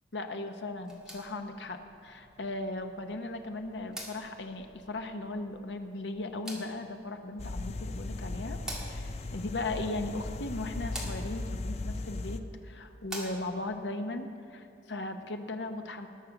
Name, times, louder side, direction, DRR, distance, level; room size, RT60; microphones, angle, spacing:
voice 1, 0.1-8.6 8.9-16.1, left 2 dB, 75° left, 6 dB, 0.9 m, -37 dB
sound 1, 0.7-13.8, right 1 dB, 5° right, 1.8 m, -48 dB
sound 2, 7.4-12.4, left 2 dB, 40° left, 0.5 m, -37 dB
19.5 x 6.7 x 5.9 m, 2.5 s
head